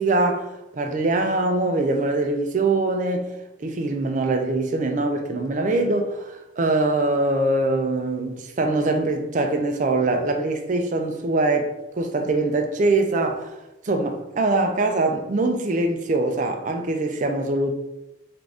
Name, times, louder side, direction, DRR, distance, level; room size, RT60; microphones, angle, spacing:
voice 1, 0.0-3.3 3.6-13.6 13.8-17.7, right 2 dB, 40° right, 0.4 m, -23 dB
3.6 x 2.5 x 3.3 m
head